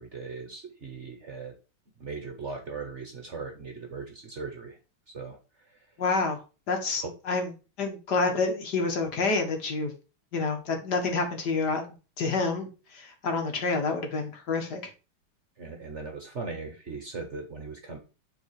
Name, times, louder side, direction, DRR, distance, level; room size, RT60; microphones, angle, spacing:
voice 1, 0.0-1.5 2.0-4.8 5.1-5.8 7.0-7.1 15.6-18.0, right 4 dB, 40° right, 4 dB, 1.2 m, -39 dB
voice 2, 6.0-6.4 6.7-7.5 7.8-9.9 10.3-14.8, left 3 dB, 55° left, 4 dB, 1.9 m, -28 dB
9.2 x 3.9 x 4.8 m, 0.33 s
omnidirectional pair, 2.2 m